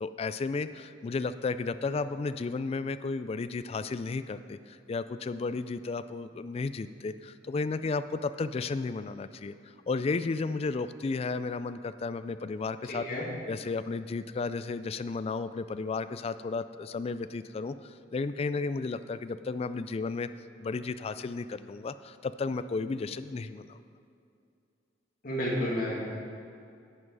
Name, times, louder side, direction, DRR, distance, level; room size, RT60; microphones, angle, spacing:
voice 1, 0.0-9.5 9.9-13.1 13.5-20.3 20.6-23.8, left 4 dB, 35° left, 12 dB, 0.3 m, -33 dB
voice 2, 12.9-13.2 25.2-26.1, equal, 50° left, -5 dB, 2.4 m, -31 dB
11.0 x 7.6 x 4.8 m, 2.5 s
head